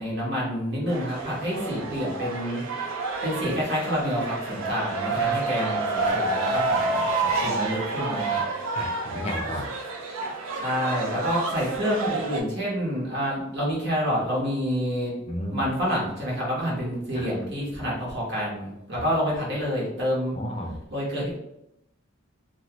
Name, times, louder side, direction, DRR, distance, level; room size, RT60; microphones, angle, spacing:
voice 1, 0.0-2.6 3.2-8.4 10.5-15.1 15.5-20.3 20.9-21.4, equal, 55° right, -5 dB, 1.1 m, -28 dB
sound 1, 0.9-12.4, right 3 dB, 80° right, 0.6 m, -29 dB
voice 2, 1.5-2.0 8.7-9.7 15.3-15.7 17.1-17.3 20.4-20.8, equal, 30° left, 2 dB, 0.4 m, -33 dB
2.8 x 2.3 x 2.9 m, 0.83 s
head